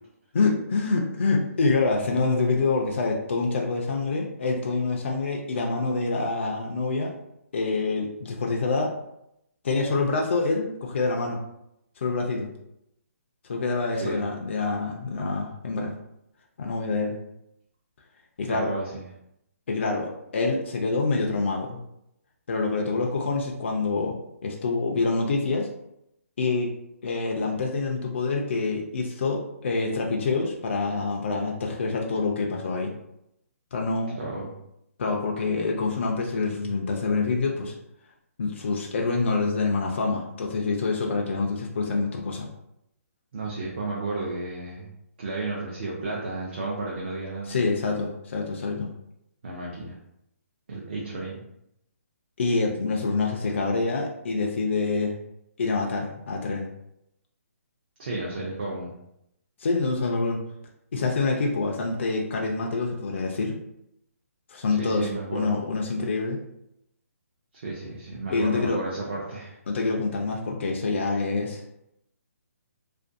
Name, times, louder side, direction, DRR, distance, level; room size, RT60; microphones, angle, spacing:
voice 1, 0.3-7.1 7.5-8.9 9.6-11.4 12.0-12.5 13.5-15.9 16.6-17.2 18.4-18.7 19.7-21.8 22.5-24.2 24.4-25.7 26.4-26.7 27.0-32.9 33.7-34.2 35.0-37.7 38.4-42.5 47.5-48.9 52.4-55.2 55.6-56.7 59.6-60.4 60.9-63.6 64.5-66.4 68.3-68.8 69.7-71.6, left 3 dB, 50° left, 0 dB, 0.4 m, -26 dB
voice 2, 18.5-19.0 34.2-34.5 36.6-36.7 43.3-44.9 45.2-47.5 49.4-50.0 50.7-51.4 58.0-58.9 64.8-65.6 67.5-69.6, right 2 dB, 40° right, -4 dB, 0.5 m, -33 dB
2.5 x 2.2 x 2.5 m, 0.80 s
hypercardioid pair, 170°, 8 cm